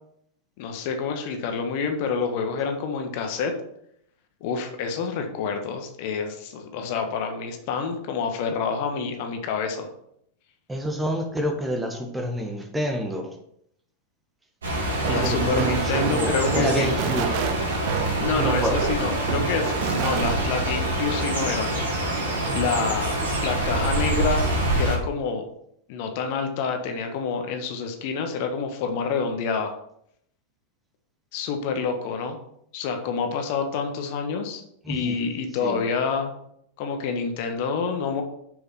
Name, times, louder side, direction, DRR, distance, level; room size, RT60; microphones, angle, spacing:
voice 1, 0.6-3.5 4.4-9.9 15.1-16.9 18.2-21.7 22.5-23.2 23.4-24.5 24.8-25.4 25.9-29.7 31.3-32.4 32.7-34.6 34.9-36.3 36.8-38.2, left 5 dB, 45° left, 5 dB, 1.4 m, -27 dB
voice 2, 10.7-13.3 15.1-17.3 18.3-18.8 34.9-35.2 35.6-35.8, equal, 10° right, 3 dB, 1.6 m, -28 dB
sound 1, 14.6-25.0, right 1 dB, 70° right, 3.2 m, -26 dB
sound 2, 15.0-20.6, right 9 dB, 45° right, 0.8 m, -29 dB
7.1 x 6.7 x 5.4 m, 0.71 s
figure-of-eight pair, 90°, 0 cm